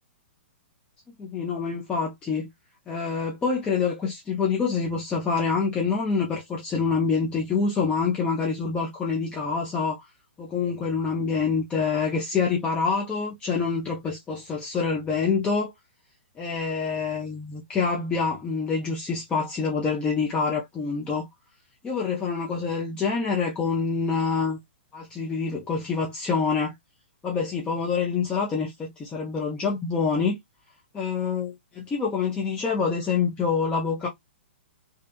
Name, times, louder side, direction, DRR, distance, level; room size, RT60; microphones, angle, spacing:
voice 1, 1.2-2.5 2.9-10.0 10.4-15.7 16.4-21.3 21.8-24.6 24.9-26.7 27.2-30.4 30.9-34.1, left 5 dB, 15° left, 0.6 m, -26 dB
2.7 x 2.3 x 2.3 m
hypercardioid pair, 130°, 6 cm